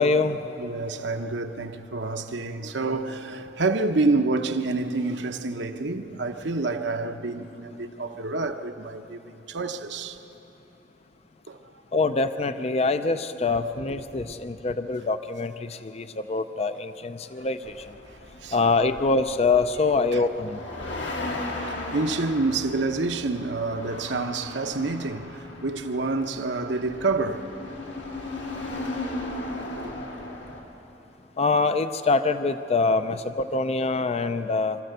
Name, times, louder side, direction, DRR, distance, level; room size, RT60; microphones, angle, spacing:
voice 1, 0.0-0.4 11.9-17.7 18.5-20.6 31.4-34.8, left 3 dB, 35° left, 0.5 m, -24 dB
voice 2, 0.6-10.2 11.5-11.7 14.1-14.2 18.4-18.6 20.1-20.2 20.8-21.0 21.7-27.5 29.8-29.9, right 3 dB, 75° right, 1.0 m, -28 dB
sound 1, 17.6-30.6, left 2 dB, 85° left, 2.9 m, -36 dB
25.5 x 13.5 x 8.1 m
head